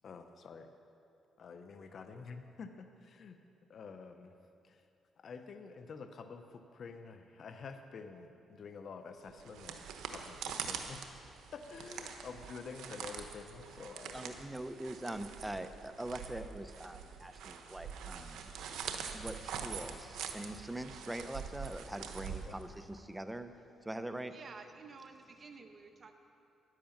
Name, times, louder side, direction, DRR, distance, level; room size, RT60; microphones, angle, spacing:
voice 1, 0.0-0.7 1.4-3.3 3.7-4.3 4.7-4.8 5.2-9.8 10.1-11.0 11.5-14.2 22.5-22.6, left 5 dB, 55° left, 7 dB, 0.8 m, -48 dB
sound 1, 9.3-23.0, right 7 dB, 80° right, 0.9 m, -44 dB
voice 2, 14.1-18.4 19.1-23.5 23.8-24.3, right 1 dB, 10° right, 9 dB, 0.7 m, -43 dB
voice 3, 24.3-26.1, right 4 dB, 40° right, 5 dB, 1.2 m, -52 dB
10.5 x 10.0 x 7.2 m, 2.7 s
cardioid pair, 90°, 0 cm